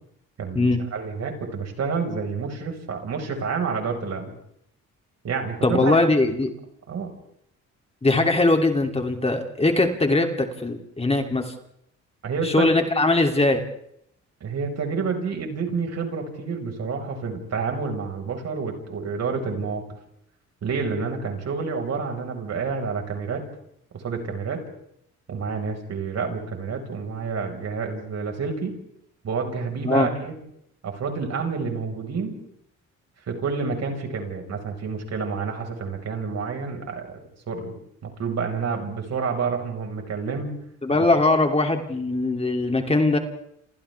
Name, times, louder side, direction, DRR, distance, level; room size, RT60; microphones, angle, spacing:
voice 1, 0.4-4.4 5.2-6.0 6.9-7.1 12.2-12.7 14.4-19.8 20.6-23.4 23.9-24.6 25.3-28.8 29.2-30.4 30.8-32.4 33.3-37.7 38.0-40.5 40.9-41.0, right 5 dB, 60° right, 3 dB, 5.3 m, -29 dB
voice 2, 5.6-6.5 8.0-11.5 12.4-13.6 29.8-30.1 40.8-43.2, left 2 dB, 20° left, 4 dB, 2.9 m, -21 dB
28.5 x 28.0 x 3.5 m, 0.72 s
cardioid pair, 90°, 30 cm